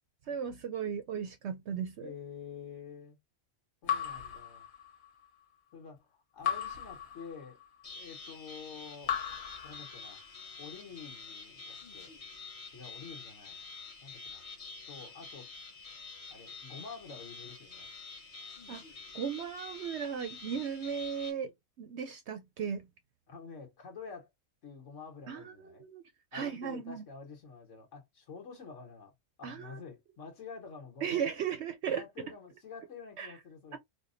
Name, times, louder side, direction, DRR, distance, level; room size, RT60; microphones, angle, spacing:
voice 1, 0.3-2.1 18.7-18.8 19.1-22.9 25.3-27.0 29.4-29.8 31.0-32.0 33.2-33.3 33.7-33.8, right 7 dB, 65° right, 0.7 m, -36 dB
voice 2, 2.0-3.2 3.8-4.7 5.7-7.6 7.9-9.2 9.6-10.2 10.6-12.1 12.7-13.6 14.0-14.4 14.9-15.5 16.3-17.9 23.3-24.3 24.6-25.8 26.3-29.1 29.4-31.3 31.9-33.8, left 5 dB, 60° left, 1.5 m, -48 dB
Raindrop / Drip, 3.9-5.2 6.4-7.8 9.0-10.4, left 8 dB, 80° left, 1.4 m, -37 dB
sound 1, 7.8-21.3, left 4 dB, 30° left, 0.7 m, -48 dB
4.5 x 2.1 x 2.5 m
omnidirectional pair, 1.5 m